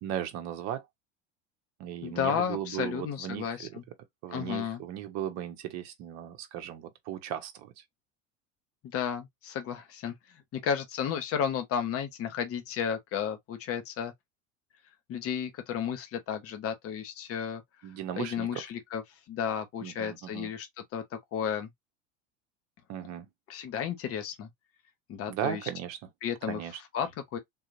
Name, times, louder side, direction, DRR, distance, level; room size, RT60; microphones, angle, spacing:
voice 1, 0.0-0.9 1.8-3.8 4.2-7.8 17.8-18.6 19.8-20.5 22.9-23.3 25.3-26.1 26.5-26.8, right 11 dB, 45° right, 0.9 m, -37 dB
voice 2, 2.0-3.8 4.3-4.8 8.8-10.1 10.5-14.1 15.1-17.6 18.2-19.0 19.3-20.7 20.9-21.7 23.5-24.5 25.1-25.6 26.2-26.6 26.9-27.4, left 8 dB, 35° left, 1.1 m, -33 dB
3.8 x 2.8 x 2.6 m
figure-of-eight pair, 75°, 38 cm